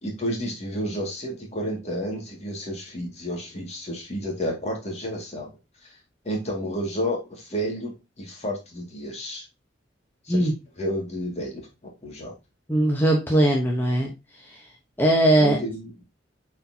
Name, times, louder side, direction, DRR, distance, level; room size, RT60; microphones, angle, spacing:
voice 1, 0.0-5.5 5.8-5.9 6.2-9.4 10.2-10.5 10.8-11.6 12.0-12.3 15.3-16.0, equal, 35° left, 0 dB, 2.2 m, -31 dB
voice 2, 12.7-14.1 14.4-14.6 15.0-15.6, right 1 dB, 10° left, -2 dB, 1.0 m, -20 dB
8.3 x 4.4 x 2.8 m, 0.25 s
head